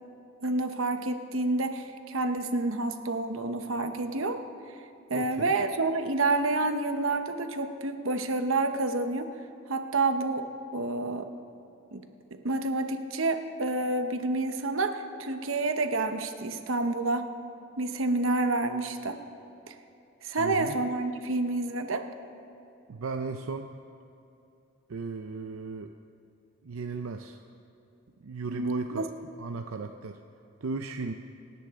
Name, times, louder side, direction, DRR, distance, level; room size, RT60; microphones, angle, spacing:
voice 1, 0.4-4.4 5.1-9.3 9.7-11.3 11.9-12.0 12.3-17.3 17.8-19.2 19.7-19.8 20.2-22.1 28.5-29.1, right 2 dB, 70° right, 7 dB, 1.0 m, -29 dB
voice 2, 5.1-5.5 20.4-20.8 22.9-23.7 24.9-25.9 26.6-27.4 28.2-29.1 29.4-30.2 30.6-31.1, right 4 dB, 90° right, 5 dB, 0.6 m, -36 dB
27.0 x 10.0 x 3.7 m, 2.8 s
head